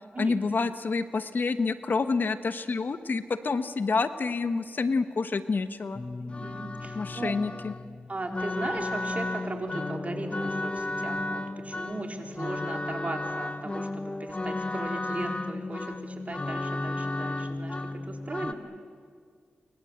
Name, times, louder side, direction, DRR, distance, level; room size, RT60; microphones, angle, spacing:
voice 1, 0.2-6.0 6.9-7.7, left 4 dB, 60° left, 11 dB, 1.2 m, -28 dB
sound 1, 5.9-18.5, left 2 dB, 30° left, 1.1 m, -33 dB
voice 2, 6.2-7.4 8.1-18.7, right 2 dB, 40° right, 3 dB, 4.1 m, -37 dB
28.0 x 24.0 x 8.1 m, 2.1 s
cardioid pair, 55°, 4 cm